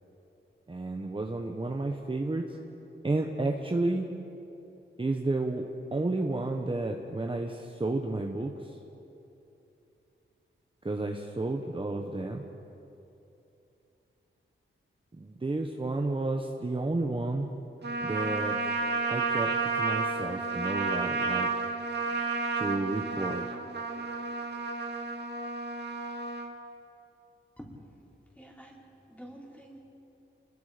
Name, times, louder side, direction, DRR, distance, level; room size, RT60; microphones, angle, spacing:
voice 1, 0.7-2.6 3.0-4.1 5.0-5.6 5.9-8.8 10.8-12.4 15.1-17.5 18.0-18.7 19.1-21.5 22.5-23.5, right 2 dB, 25° right, 2 dB, 1.2 m, -31 dB
Trumpet, 17.8-26.5, right 4 dB, 55° right, 2.1 m, -31 dB
voice 2, 28.3-29.8, equal, 5° left, -2 dB, 4.4 m, -48 dB
29.0 x 21.0 x 5.2 m, 2.9 s
wide cardioid pair, 110°, 21 cm